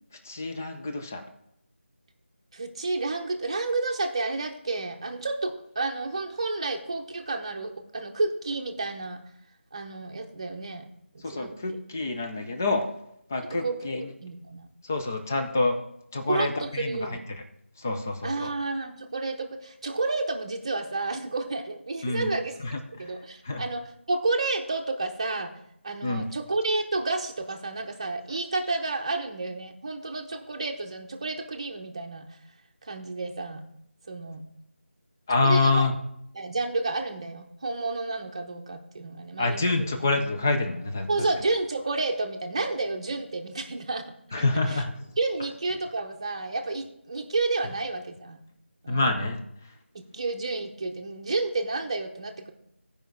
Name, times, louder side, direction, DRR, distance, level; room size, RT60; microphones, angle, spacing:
voice 1, 0.3-1.3 11.2-12.8 13.3-14.0 14.9-15.8 16.1-17.1 17.8-18.5 22.0-22.3 23.5-23.6 26.0-26.3 35.3-35.9 39.4-41.1 44.3-44.9 48.9-49.4, left 3 dB, 15° left, 5 dB, 0.4 m, -26 dB
voice 2, 2.5-9.2 9.7-10.9 11.1-11.6 13.4-14.7 16.3-17.3 18.2-25.6 25.8-32.3 32.9-33.6 34.1-34.4 35.4-35.8 36.3-40.0 41.1-44.1 44.7-44.8 45.2-48.4 48.8-49.2 49.9-52.5, right 3 dB, 25° right, 4 dB, 0.8 m, -31 dB
14.5 x 5.2 x 4.5 m, 0.76 s
figure-of-eight pair, 175°, 7 cm